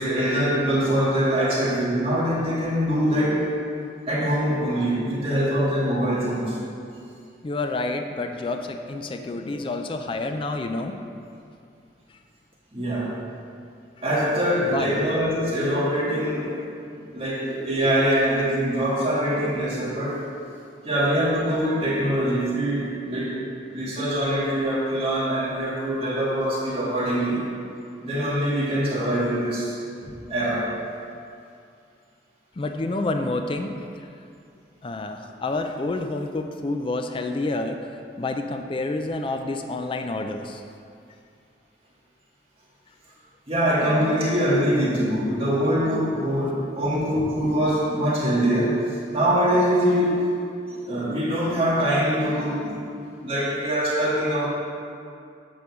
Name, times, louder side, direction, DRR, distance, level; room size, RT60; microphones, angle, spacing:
voice 1, 0.0-3.5 4.1-6.6 12.7-13.2 14.0-16.6 17.1-20.2 20.8-23.4 23.7-27.5 28.0-29.7 30.0-30.7 43.5-48.9 49.1-50.3 50.7-52.8 53.2-54.5, equal, 30° right, -7 dB, 1.8 m, -23 dB
voice 2, 7.4-11.0 14.6-15.0 32.6-34.1 34.8-37.9 38.2-40.6, left 2 dB, 30° left, 6 dB, 0.4 m, -28 dB
8.5 x 3.8 x 5.9 m, 2.4 s
head